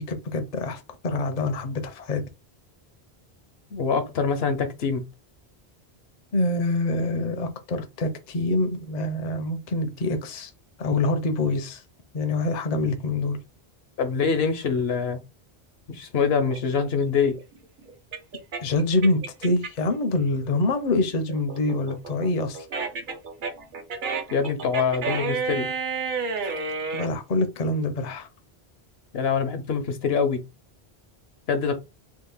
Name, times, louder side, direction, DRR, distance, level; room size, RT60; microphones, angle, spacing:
voice 1, 0.1-2.2 6.3-10.5 10.8-11.8 12.1-13.4 18.6-22.7 26.9-28.3, left 2 dB, 50° left, 0.6 m, -25 dB
voice 2, 3.7-5.0 14.0-15.2 15.9-17.4 24.3-25.7 29.1-30.4 31.5-31.8, left 5 dB, 75° left, 1.0 m, -24 dB
sound 1, 16.5-19.9 20.3-27.1, right 4 dB, 55° right, 0.8 m, -31 dB
2.8 x 2.4 x 3.7 m
omnidirectional pair, 1.1 m